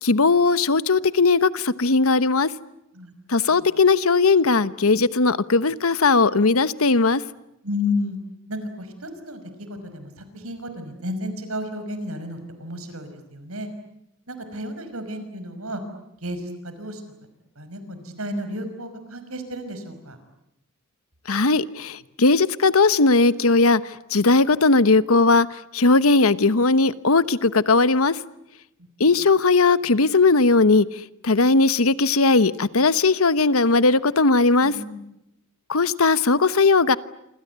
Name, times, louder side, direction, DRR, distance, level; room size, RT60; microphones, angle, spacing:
voice 1, 0.0-2.5 3.3-7.2 21.3-28.2 29.0-30.9 31.2-34.7 35.7-37.0, left 3 dB, 85° left, 1.1 m, -18 dB
voice 2, 7.6-8.2 8.5-13.7 14.3-15.8 16.2-17.0 17.6-20.2 29.0-29.1 34.6-35.0, left 2 dB, 90° right, 5.7 m, -32 dB
27.5 x 26.5 x 8.2 m
head